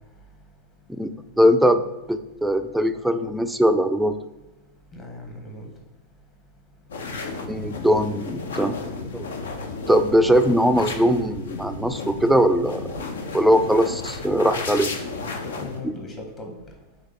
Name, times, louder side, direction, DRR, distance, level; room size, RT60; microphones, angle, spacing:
voice 1, 1.0-1.8 2.1-4.2 7.5-8.8 9.1-9.2 9.9-13.0 13.3-14.9 15.8-15.9, equal, 5° right, 9 dB, 0.3 m, -20 dB
voice 2, 4.9-5.7 13.4-13.6 15.2-16.5, left 2 dB, 30° left, 1 dB, 1.0 m, -39 dB
sound 1, 6.9-15.8, left 3 dB, 80° left, 0.5 m, -33 dB
4.0 x 3.0 x 3.9 m, 0.98 s
hypercardioid pair, 100°, 0 cm